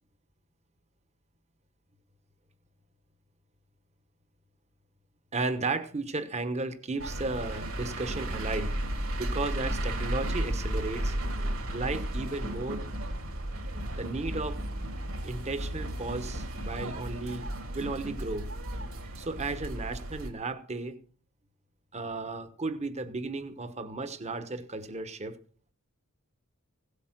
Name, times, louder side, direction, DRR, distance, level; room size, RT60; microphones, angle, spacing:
voice 1, 5.3-8.7 9.2-11.1 11.7-12.8 14.0-14.6 15.2-17.5 17.7-18.5 19.0-20.9 21.9-25.4, right 3 dB, 30° right, 10 dB, 1.2 m, -34 dB
sound 1, 7.0-20.3, right 1 dB, 65° right, 3.3 m, -34 dB
16.5 x 8.3 x 6.0 m, 0.43 s
head